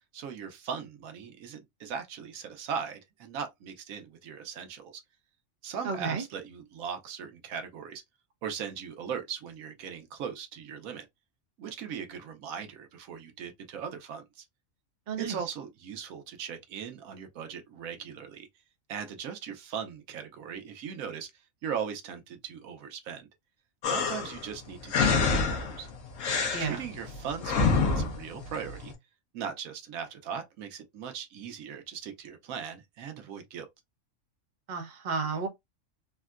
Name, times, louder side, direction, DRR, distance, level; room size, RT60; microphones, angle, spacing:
voice 1, 0.1-5.0 5.6-8.0 8.4-11.1 11.6-14.5 15.2-18.5 18.9-21.3 21.6-23.3 23.8-25.9 26.6-28.9 29.3-33.7, right 7 dB, 85° right, 1.1 m, -39 dB
voice 2, 5.8-6.2 15.1-15.4 26.5-26.8 34.7-35.5, right 5 dB, 40° right, 0.8 m, -32 dB
sound 1, 23.8-28.9, left 4 dB, 75° left, 1.2 m, -28 dB
3.6 x 2.2 x 2.4 m
omnidirectional pair, 1.4 m